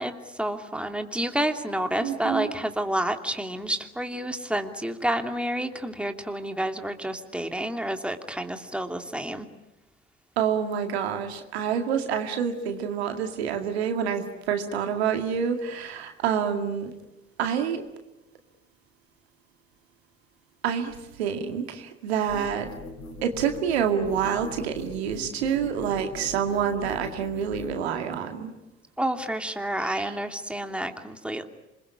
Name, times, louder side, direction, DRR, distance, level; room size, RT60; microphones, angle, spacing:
voice 1, 0.0-9.5 29.0-31.4, right 1 dB, 5° right, 5 dB, 2.8 m, -29 dB
voice 2, 2.0-2.5 10.4-16.9 17.4-17.8 20.6-22.7 23.2-28.5 29.8-30.2, right 8 dB, 85° right, 6 dB, 2.2 m, -27 dB
sound 1, 22.3-27.8, left 1 dB, 65° left, 6.9 m, -41 dB
27.0 x 21.5 x 9.9 m, 0.96 s
hypercardioid pair, 55°, 31 cm